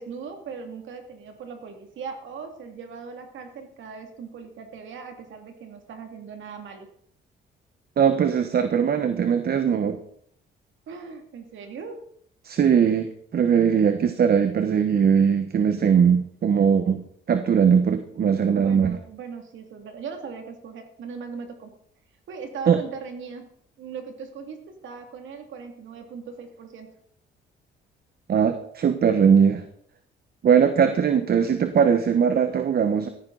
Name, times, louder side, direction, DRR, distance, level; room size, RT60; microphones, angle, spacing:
voice 1, 0.0-6.9 10.9-12.0 18.4-21.8 22.3-23.5 23.8-26.9, right 5 dB, 75° right, 5 dB, 2.5 m, -39 dB
voice 2, 8.0-10.0 12.4-19.0 22.7-22.8 28.3-29.6 30.4-33.1, right 7 dB, 50° right, 9 dB, 1.2 m, -20 dB
15.0 x 14.5 x 4.0 m, 0.64 s
cardioid pair, 90°, 20 cm